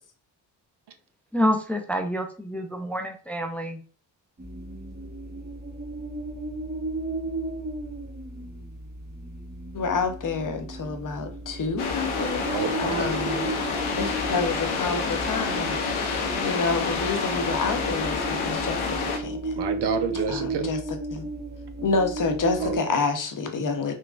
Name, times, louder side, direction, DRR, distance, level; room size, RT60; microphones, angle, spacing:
voice 1, 1.3-3.8, equal, 5° left, 0.4 m, -27 dB
sound 1, 4.4-22.8, right 2 dB, 20° right, 0.9 m, -35 dB
voice 2, 9.7-12.5 12.8-13.5 14.0-19.6 20.3-20.8 21.1-21.3 21.8-23.9, left 4 dB, 40° left, 0.8 m, -28 dB
sound 2, 11.8-19.2, left 4 dB, 80° left, 0.7 m, -28 dB
voice 3, 12.4-13.2 19.5-20.7 22.6-23.1, right 6 dB, 55° right, 0.6 m, -30 dB
3.7 x 2.2 x 2.4 m
hypercardioid pair, 40°, 49 cm